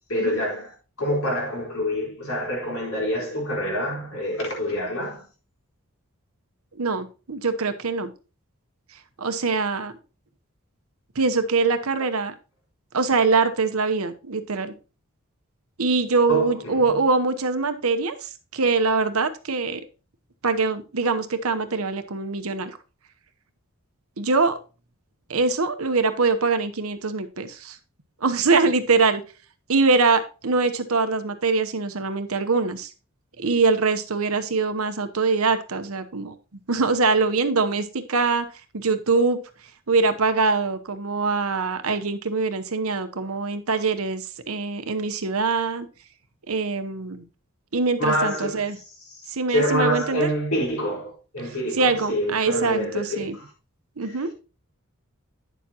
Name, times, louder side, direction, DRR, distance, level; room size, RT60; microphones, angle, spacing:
voice 1, 0.1-5.2 12.0-12.1 16.3-17.0 43.2-43.4 48.0-48.6 49.1-53.5 54.0-54.3, equal, 75° left, 4.0 m, -27 dB
voice 2, 6.8-8.1 9.2-9.9 11.1-12.3 12.9-14.7 15.8-19.8 20.4-22.7 24.2-24.6 25.3-27.8 28.2-29.2 29.7-32.9 33.4-36.3 36.7-38.5 38.7-39.4 39.9-45.9 46.5-47.2 47.7-48.8 49.3-50.3 51.8-53.4 54.0-54.3, right 4 dB, 80° right, 1.0 m, -23 dB
9.9 x 7.1 x 2.9 m
head